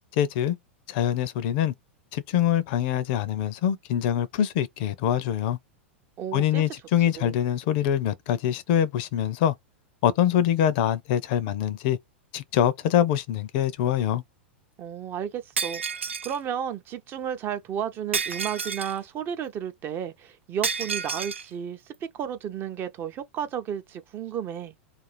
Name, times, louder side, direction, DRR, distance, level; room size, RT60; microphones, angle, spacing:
voice 1, 0.1-0.6 0.9-1.7 2.1-5.6 6.3-9.5 10.0-12.0 12.3-14.2, left 10 dB, 55° left, 0.5 m, -24 dB
voice 2, 6.2-6.6 7.2-7.3 14.8-24.7, right 9 dB, 35° right, 0.5 m, -33 dB
Shatter, 15.6-16.4 18.1-19.0 20.6-21.4, right 5 dB, 90° right, 0.5 m, -30 dB
2.5 x 2.3 x 3.2 m
hypercardioid pair, 100°, 6 cm